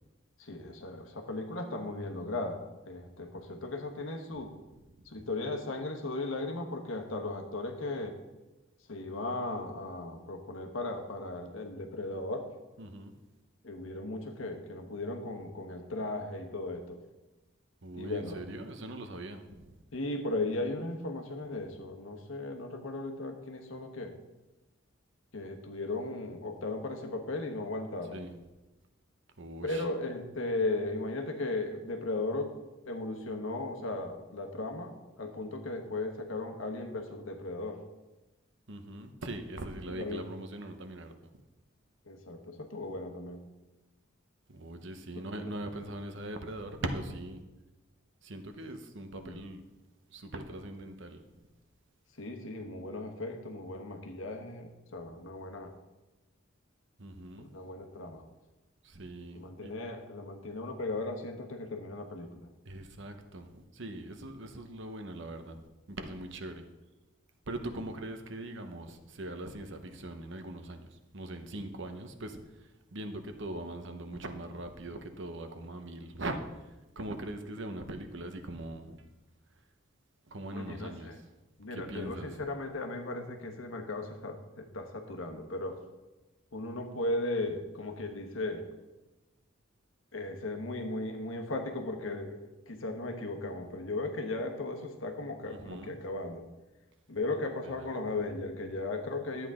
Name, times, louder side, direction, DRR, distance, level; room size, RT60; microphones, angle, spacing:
voice 1, 0.4-4.5 5.0-8.2 8.9-12.5 13.6-17.0 17.9-18.4 19.9-24.1 25.3-28.2 29.6-32.6 32.8-37.8 39.9-40.2 42.1-43.4 45.4-45.5 49.1-49.4 52.1-55.7 57.4-58.2 59.3-62.5 67.7-67.8 80.5-81.2 81.6-85.8 86.5-88.7 90.1-96.4 97.1-99.5, left 2 dB, 75° left, 4 dB, 1.2 m, -36 dB
voice 2, 12.8-13.1 17.8-19.8 28.1-28.3 29.4-29.8 38.7-41.1 44.5-47.4 48.2-49.6 50.1-51.2 57.0-57.5 58.8-59.7 62.6-66.7 67.5-79.1 80.3-81.2 81.7-82.3 95.5-96.0 97.8-98.0, right 1 dB, 60° right, 7 dB, 0.9 m, -41 dB
12.0 x 8.2 x 3.7 m, 1.1 s
head